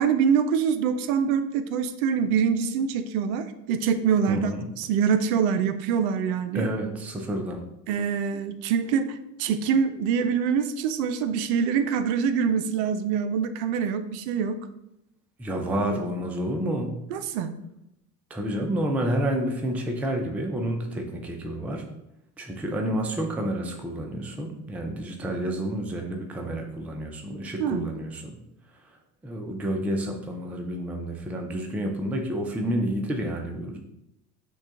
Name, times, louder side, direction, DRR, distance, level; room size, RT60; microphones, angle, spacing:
voice 1, 0.0-4.5 4.8-6.7 7.9-14.6 17.1-17.5 27.6-27.9, right 7 dB, 60° right, 10 dB, 0.5 m, -25 dB
voice 2, 4.3-4.7 6.5-7.6 15.4-16.9 18.3-21.9 22.4-28.4 28.8-29.0 29.2-33.8, right 1 dB, 5° right, 3 dB, 0.4 m, -29 dB
6.0 x 2.3 x 3.6 m, 0.84 s
hypercardioid pair, 75°, 50 cm